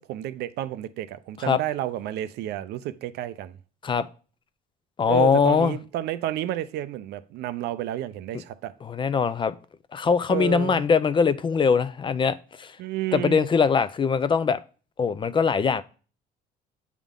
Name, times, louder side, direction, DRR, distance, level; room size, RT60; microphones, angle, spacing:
voice 1, 0.0-3.6 5.1-8.7 10.3-10.8 12.8-13.5, right 13 dB, 80° right, 0.5 m, -31 dB
voice 2, 5.0-5.7 8.8-9.5 9.9-12.7 13.1-14.6 15.0-15.8, left 6 dB, 30° left, 0.4 m, -22 dB
8.2 x 3.6 x 3.7 m
cardioid pair, 110°, 17 cm